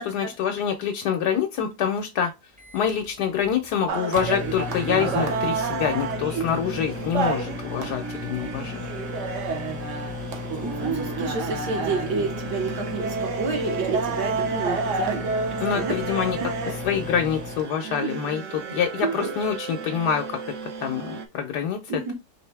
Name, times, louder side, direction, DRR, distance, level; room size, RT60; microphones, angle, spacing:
voice 1, 0.0-2.3 2.7-8.8 15.6-16.4 16.7-20.4 20.8-22.1, left 8 dB, 75° left, 1.2 m, -26 dB
Microwave oven, 2.6-17.7, left 5 dB, 10° right, 0.5 m, -36 dB
sound 1, 3.9-21.3, right 5 dB, 60° right, 0.8 m, -30 dB
voice 2, 10.6-16.0 21.9-22.1, right 4 dB, 75° right, 1.8 m, -30 dB
4.6 x 2.6 x 3.3 m
omnidirectional pair, 1.8 m